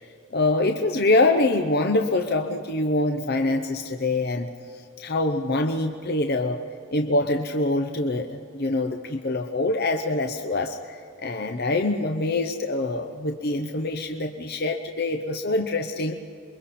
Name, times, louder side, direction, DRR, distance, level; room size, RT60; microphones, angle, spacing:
voice 1, 0.3-6.6 6.9-16.2, left 2 dB, 45° left, 5 dB, 0.8 m, -25 dB
28.0 x 23.0 x 4.3 m, 2.6 s
head